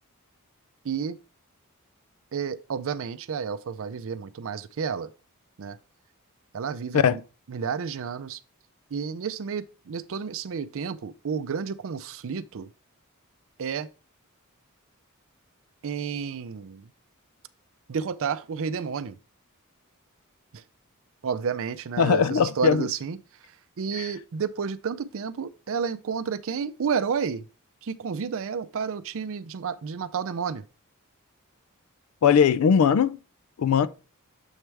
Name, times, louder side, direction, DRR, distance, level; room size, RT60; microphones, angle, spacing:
voice 1, 0.8-1.2 2.3-5.1 5.6-5.8 6.5-7.2 7.5-8.4 8.9-12.7 13.6-13.9 15.8-16.9 17.9-19.2 20.5-20.6 21.2-23.2 23.8-27.5 27.8-30.6, right 6 dB, 65° right, 0.4 m, -31 dB
voice 2, 22.0-22.9 24.0-24.1 32.2-33.2 33.6-33.9, left 7 dB, 70° left, 0.4 m, -20 dB
7.2 x 3.3 x 4.5 m
head